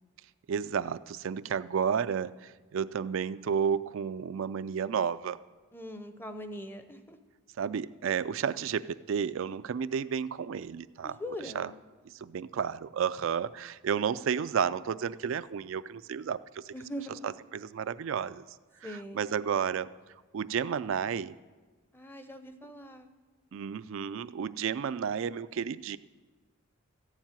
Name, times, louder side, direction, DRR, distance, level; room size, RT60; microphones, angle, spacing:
voice 1, 0.5-5.4 7.6-11.2 11.5-11.7 12.1-16.7 17.2-18.4 18.8-19.9 20.3-21.4 23.5-26.0, right 7 dB, 65° right, 13 dB, 0.3 m, -32 dB
voice 2, 5.7-7.2 11.0-11.8 16.7-17.2 18.8-19.3 21.9-23.1, left 1 dB, 10° left, 9 dB, 0.7 m, -41 dB
14.0 x 7.3 x 9.0 m, 1.3 s
head